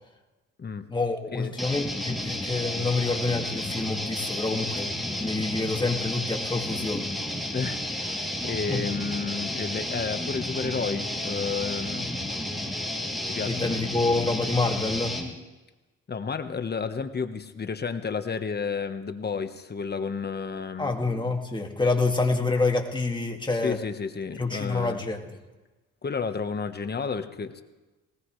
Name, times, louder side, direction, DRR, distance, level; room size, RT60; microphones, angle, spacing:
voice 1, 0.9-7.1 8.7-8.8 13.5-15.2 20.8-23.8 24.4-25.3, left 3 dB, 15° left, 2 dB, 2.2 m, -27 dB
sound 1, 1.6-15.3, left 1 dB, ahead, 2.9 m, -32 dB
voice 2, 7.5-12.1 13.3-13.8 16.1-20.9 23.6-25.0 26.0-27.6, left 5 dB, 35° left, 9 dB, 1.3 m, -31 dB
20.0 x 19.0 x 3.3 m, 1.1 s
cardioid pair, 90°, 30 cm